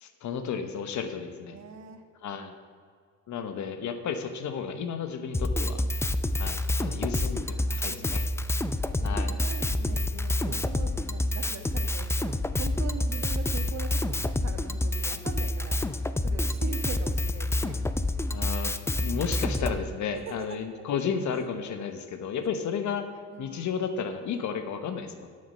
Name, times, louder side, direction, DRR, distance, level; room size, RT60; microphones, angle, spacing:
voice 1, 0.0-1.6 2.2-2.6 3.3-5.8 6.4-8.2 9.0-9.3 18.3-25.3, left 6 dB, 70° left, 8 dB, 1.1 m, -33 dB
voice 2, 1.5-2.0 6.0-6.3 7.4-7.7 8.0-8.1 8.8-15.8 16.2-17.7 20.3-20.6 22.3-22.7 23.3-23.6, right 5 dB, 60° right, 5 dB, 1.4 m, -42 dB
Drum kit, 5.3-19.8, left 1 dB, 10° left, 0.4 m, -28 dB
11.0 x 6.6 x 5.6 m, 2.1 s
cardioid pair, 90°, 30 cm